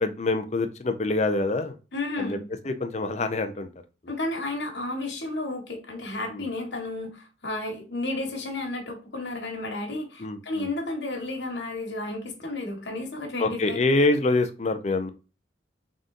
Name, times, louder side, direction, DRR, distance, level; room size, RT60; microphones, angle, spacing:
voice 1, 0.0-1.8 2.2-2.4 2.7-3.7 6.3-6.4 10.2-10.7 13.4-15.1, left 2 dB, 35° left, 8 dB, 0.5 m, -25 dB
voice 2, 1.9-2.5 4.1-13.8, left 2 dB, 75° left, 1 dB, 1.4 m, -32 dB
3.8 x 3.7 x 2.6 m, 0.32 s
head